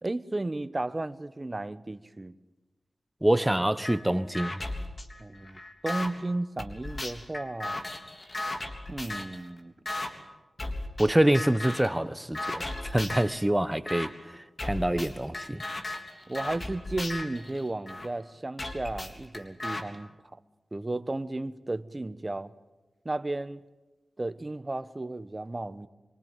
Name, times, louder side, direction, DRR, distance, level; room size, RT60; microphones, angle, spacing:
voice 1, 0.0-2.3 5.2-7.8 8.9-9.7 16.3-20.1 20.7-22.5 23.0-23.6 24.2-25.9, right 2 dB, 30° right, 1.2 m, -34 dB
voice 2, 3.2-4.6 11.0-15.6, right 1 dB, 10° right, 1.2 m, -26 dB
sound 1, 3.8-4.0 4.3-6.1 6.6-9.4 9.9-10.1 10.6-11.1 11.3-11.9 12.3-13.4 13.9-14.1 14.6-18.1 18.6-19.8, left 2 dB, 40° left, 3.5 m, -36 dB
24.5 x 24.5 x 9.2 m
cardioid pair, 55°, 0 cm